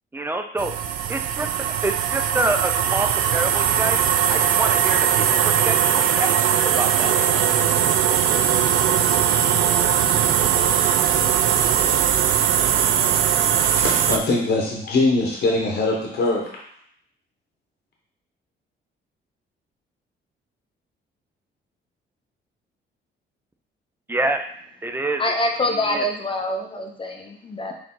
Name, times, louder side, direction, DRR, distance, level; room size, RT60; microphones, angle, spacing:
voice 1, 0.1-0.7 1.1-1.5 1.8-7.2 24.1-24.5 24.8-25.2 25.7-26.0, right 2 dB, 10° right, 5 dB, 0.4 m, -27 dB
sound 1, 0.6-14.2, right 9 dB, 85° right, 0.4 m, -20 dB
voice 2, 13.6-16.4, left 2 dB, 55° left, -2 dB, 1.1 m, -22 dB
voice 3, 25.2-27.7, left 1 dB, 25° left, 2 dB, 0.7 m, -25 dB
4.6 x 2.7 x 3.8 m, 0.66 s
cardioid pair, 90°, 20 cm